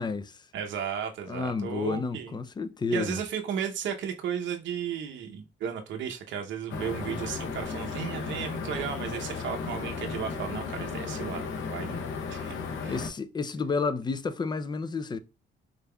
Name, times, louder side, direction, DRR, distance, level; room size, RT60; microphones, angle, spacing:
voice 1, 0.0-0.5 1.3-3.2 11.7-12.1 12.9-15.2, left 4 dB, 20° left, 0.4 m, -31 dB
voice 2, 0.5-2.4 2.9-12.6 12.8-13.0, right 8 dB, 70° right, 0.7 m, -34 dB
sound 1, 6.7-13.1, left 5 dB, 75° left, 0.7 m, -35 dB
3.8 x 3.4 x 2.2 m
cardioid pair, 90°, 20 cm